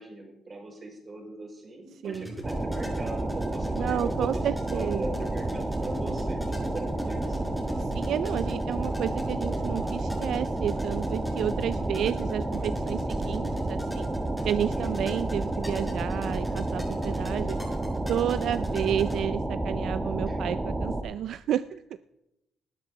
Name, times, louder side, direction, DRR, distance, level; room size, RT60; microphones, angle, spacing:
voice 1, 0.0-4.4 4.7-7.4 14.7-15.2 20.2-20.4, right 2 dB, 30° right, 2 dB, 4.9 m, -39 dB
sound 1, 2.0-19.2, equal, 5° left, 5.5 m, -43 dB
voice 2, 2.0-2.3 3.7-5.0 7.8-14.1 14.4-17.6 18.1-21.8, right 10 dB, 70° right, 14 dB, 0.4 m, -31 dB
sound 2, 2.4-21.0, right 2 dB, 15° right, 1.4 m, -30 dB
19.5 x 10.5 x 3.8 m, 0.90 s
cardioid pair, 90°, 0 cm